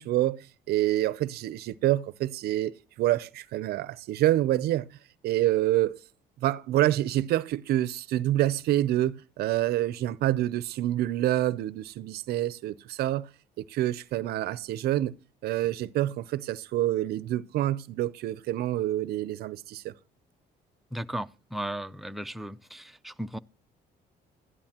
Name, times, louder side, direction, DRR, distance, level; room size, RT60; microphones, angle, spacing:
voice 1, 0.0-5.0 5.2-6.0 6.4-13.3 13.7-15.1 15.4-19.9, right 14 dB, 70° right, 0.5 m, -27 dB
voice 2, 20.9-23.4, right 1 dB, ahead, 0.4 m, -36 dB
12.5 x 10.5 x 2.9 m
cardioid pair, 110°, 17 cm